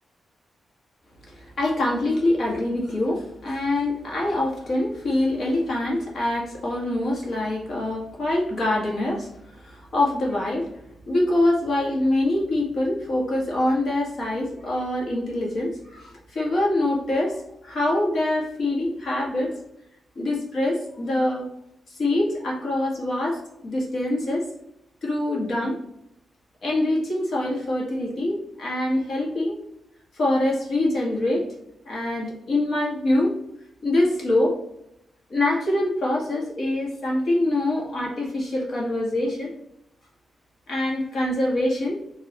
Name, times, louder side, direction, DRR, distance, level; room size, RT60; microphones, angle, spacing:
voice 1, 1.3-9.3 9.6-10.7 11.1-19.5 20.1-21.5 22.0-24.5 25.0-25.8 26.6-29.6 30.1-31.5 31.8-33.3 33.8-34.6 35.3-39.5 40.7-42.1, left 1 dB, 55° left, -3 dB, 1.6 m, -24 dB
5.4 x 3.0 x 3.0 m, 0.79 s
wide cardioid pair, 155°, 0 cm